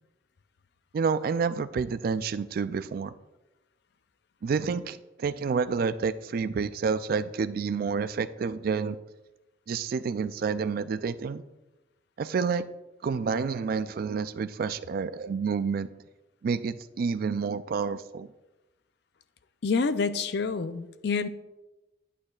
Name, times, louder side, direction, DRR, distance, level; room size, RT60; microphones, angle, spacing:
voice 1, 0.9-3.1 4.4-9.0 9.7-11.4 12.2-12.6 13.0-15.9 16.4-18.3, right 5 dB, 50° right, 14 dB, 0.3 m, -29 dB
voice 2, 19.6-21.3, left 4 dB, 60° left, 12 dB, 0.4 m, -27 dB
10.0 x 8.8 x 2.3 m, 1.0 s
head